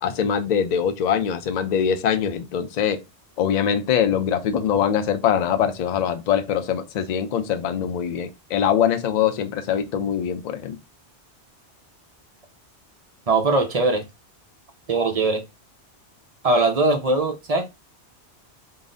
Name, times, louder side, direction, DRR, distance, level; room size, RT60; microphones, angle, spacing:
voice 1, 0.0-3.0 3.4-10.8, left 8 dB, 55° left, 0.5 m, -23 dB
voice 2, 13.3-14.1 14.9-15.4 16.4-17.7, right 3 dB, 45° right, 0.6 m, -21 dB
3.8 x 2.0 x 3.7 m
omnidirectional pair, 1.1 m